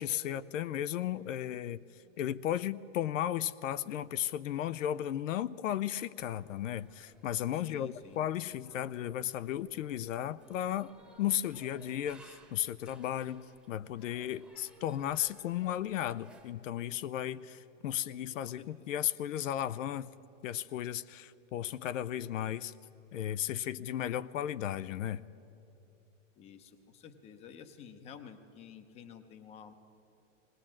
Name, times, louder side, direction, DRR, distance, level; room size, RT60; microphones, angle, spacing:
voice 1, 0.0-1.8 2.2-10.9 11.2-20.1 20.4-22.7 23.1-25.2, left 11 dB, 75° left, 15 dB, 0.6 m, -35 dB
sound 1, 6.2-16.5, right 2 dB, 5° right, 1.0 m, -60 dB
voice 2, 7.6-8.2 17.9-18.3 18.6-18.9 26.4-29.7, left 7 dB, 15° left, 10 dB, 0.7 m, -51 dB
19.5 x 18.5 x 7.4 m, 3.0 s
supercardioid pair, 155°, 38 cm